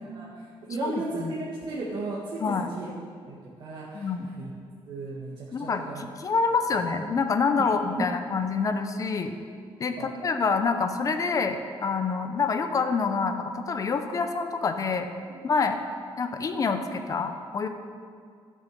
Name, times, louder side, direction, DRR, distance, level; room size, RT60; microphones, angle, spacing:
voice 1, 0.1-1.2 1.7-2.9 3.3-4.5 4.9-6.1 7.6-7.7 10.0-10.1, right 3 dB, 50° right, -6 dB, 1.8 m, -36 dB
voice 2, 0.8-1.4 2.4-2.7 3.9-4.3 5.5-9.3 9.8-15.1 15.4-15.8 16.2-17.7, left 4 dB, 35° left, 7 dB, 0.8 m, -27 dB
13.0 x 6.4 x 6.8 m, 2.2 s
cardioid pair, 145°, 10 cm